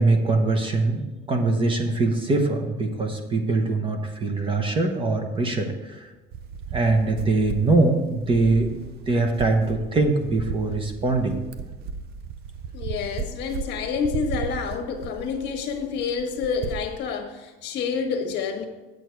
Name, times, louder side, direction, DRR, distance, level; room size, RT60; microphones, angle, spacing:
voice 1, 0.0-6.1 6.7-8.7 9.1-11.4, right 3 dB, 25° right, 0.9 m, -22 dB
sound 1, 6.3-17.0, right 6 dB, 50° right, 0.6 m, -35 dB
voice 2, 12.7-18.7, left 6 dB, 55° left, 1.4 m, -28 dB
8.4 x 8.1 x 4.6 m
cardioid pair, 160°, 21 cm